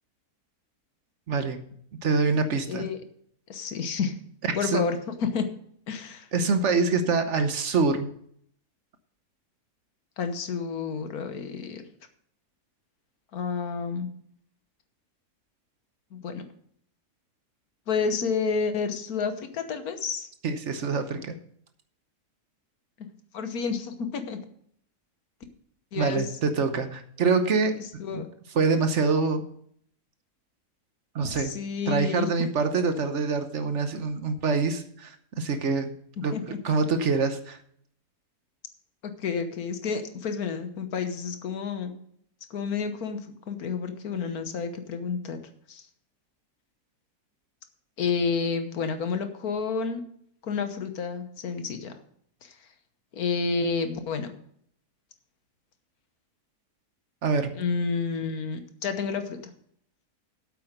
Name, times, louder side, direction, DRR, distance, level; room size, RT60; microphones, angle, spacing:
voice 1, 1.3-1.6 2.0-2.9 4.5-4.8 6.3-8.1 20.4-21.3 26.0-27.7 28.1-28.2 28.5-29.4 31.1-31.5 31.9-35.9 36.2-36.3 36.6-37.6 57.2-57.5, right 4 dB, 55° right, 8 dB, 1.1 m, -25 dB
voice 2, 2.7-3.0 3.5-4.1 4.5-5.5 5.9-6.3 10.2-11.8 13.3-14.1 16.1-16.4 17.9-20.3 23.3-24.4 25.9-26.3 28.0-28.3 31.3-32.3 36.3-36.6 39.0-41.9 42.5-45.4 45.7-45.8 48.0-50.0 50.4-51.9 52.4-52.6 53.1-54.3 57.5-59.4, left 5 dB, 70° left, 8 dB, 1.5 m, -30 dB
8.5 x 8.2 x 6.5 m, 0.66 s
omnidirectional pair, 1.6 m